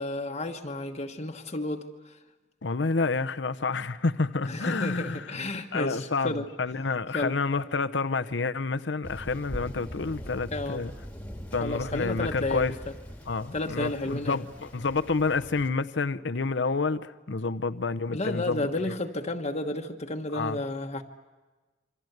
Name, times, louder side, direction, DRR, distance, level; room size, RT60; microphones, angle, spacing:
voice 1, 0.0-2.2 4.4-6.5 7.1-7.4 10.5-10.8 11.6-12.8 13.5-14.4 18.1-21.0, left 2 dB, 35° left, 3 dB, 1.2 m, -32 dB
voice 2, 2.6-5.3 5.7-10.9 11.5-12.7 13.3-18.9 20.3-20.6, left 4 dB, 80° left, 11 dB, 0.8 m, -29 dB
Thunder, 9.0-15.7, equal, 10° left, 1.8 m, -41 dB
28.0 x 25.0 x 8.0 m, 1.3 s
head